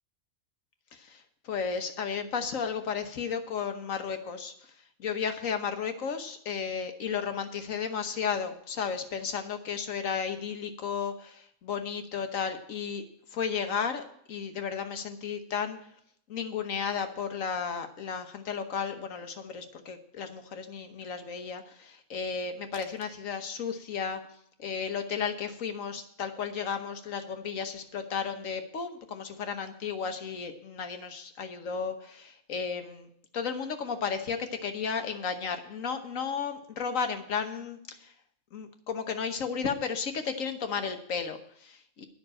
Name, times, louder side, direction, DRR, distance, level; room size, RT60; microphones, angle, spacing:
voice 1, 0.9-4.5 5.0-13.0 13.3-15.8 16.3-24.2 24.6-33.1 33.3-38.1 38.5-42.0, left 6 dB, 70° left, 7 dB, 1.4 m, -34 dB
10.0 x 6.0 x 8.7 m, 0.67 s
omnidirectional pair, 1.5 m